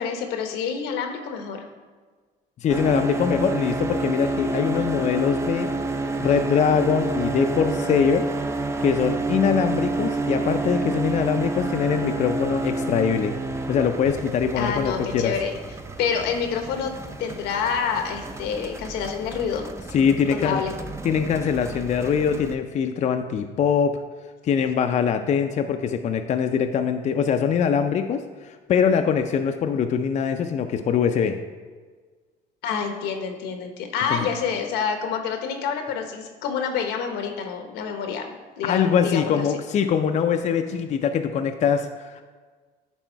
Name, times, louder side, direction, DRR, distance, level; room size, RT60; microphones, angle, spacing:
voice 1, 0.0-1.6 14.6-15.5 16.0-19.7 20.3-20.7 32.6-39.5, left 6 dB, 90° left, 5 dB, 1.0 m, -28 dB
voice 2, 2.6-5.7 6.2-8.3 8.8-13.3 13.7-15.3 19.9-20.6 21.0-24.0 24.4-31.4 34.1-34.3 38.6-42.2, left 7 dB, 45° left, 6 dB, 0.5 m, -23 dB
sound 1, 2.7-22.5, right 2 dB, 15° right, 0.5 m, -29 dB
10.0 x 3.6 x 4.5 m, 1.5 s
cardioid pair, 110°, 17 cm